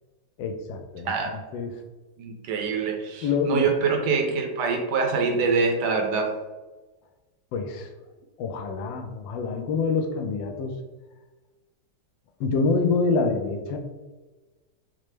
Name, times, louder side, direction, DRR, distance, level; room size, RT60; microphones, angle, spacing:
voice 1, 0.4-1.7 3.2-3.7 7.5-7.9 8.4-10.8 12.4-13.8, left 4 dB, 90° left, 5 dB, 1.3 m, -26 dB
voice 2, 2.2-6.3, right 4 dB, 75° right, 3 dB, 1.1 m, -25 dB
5.5 x 2.0 x 3.1 m, 1.2 s
omnidirectional pair, 2.0 m